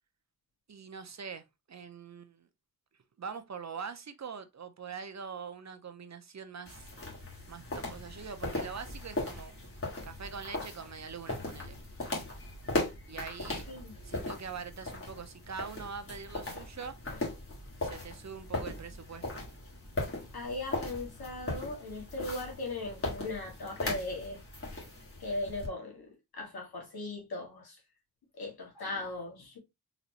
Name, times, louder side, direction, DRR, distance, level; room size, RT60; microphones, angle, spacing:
voice 1, 0.7-2.5 3.2-6.9 7.5-9.6 10.0-11.8 13.1-13.6 14.0-16.9 17.8-19.5, right 6 dB, 50° right, 0.6 m, -43 dB
sound 1, 6.7-25.7, left 2 dB, 35° left, 1.7 m, -38 dB
voice 2, 20.3-24.4 24.7-24.8 25.2-27.8 28.3-29.6, left 2 dB, 80° left, 1.8 m, -38 dB
4.0 x 3.0 x 2.8 m
wide cardioid pair, 90°, 37 cm